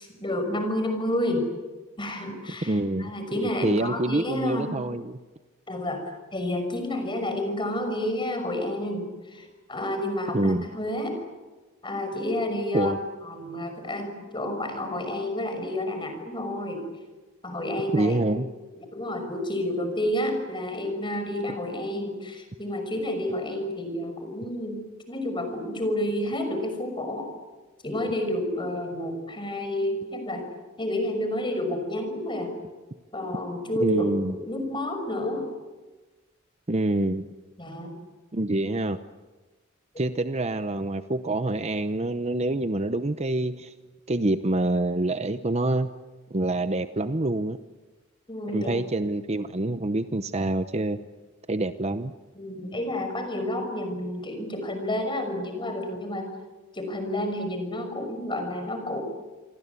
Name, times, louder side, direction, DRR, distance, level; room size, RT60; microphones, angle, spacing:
voice 1, 0.0-1.5 2.0-4.8 5.7-6.0 6.3-11.2 11.8-12.9 13.2-16.9 17.4-18.4 18.8-24.8 25.1-27.3 27.8-30.5 30.8-32.5 33.1-35.5 37.6-38.0 39.9-40.0 48.3-48.7 52.3-56.3 56.7-59.0, left 1 dB, 25° left, 6 dB, 5.9 m, -30 dB
voice 2, 2.6-3.1 3.6-5.2 10.3-10.7 12.7-13.0 17.9-18.5 33.8-34.4 36.7-37.2 38.3-39.0 40.0-43.7 44.1-45.9 46.3-47.6 48.5-51.0 51.5-52.1, right 2 dB, 30° right, 11 dB, 0.8 m, -26 dB
28.5 x 23.5 x 8.4 m, 1.2 s
head